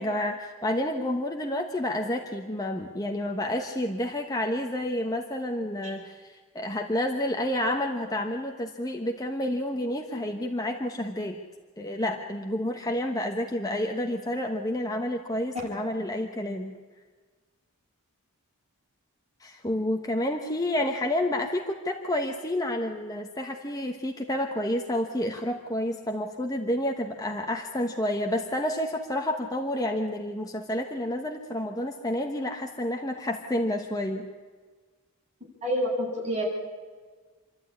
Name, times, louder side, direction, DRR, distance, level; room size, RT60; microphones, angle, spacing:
voice 1, 0.0-11.4 11.8-16.7 19.4-34.3, left 1 dB, 15° left, 2 dB, 1.2 m, -29 dB
voice 2, 35.6-36.4, equal, 30° right, -3 dB, 8.0 m, -27 dB
27.5 x 12.0 x 9.9 m, 1.5 s
head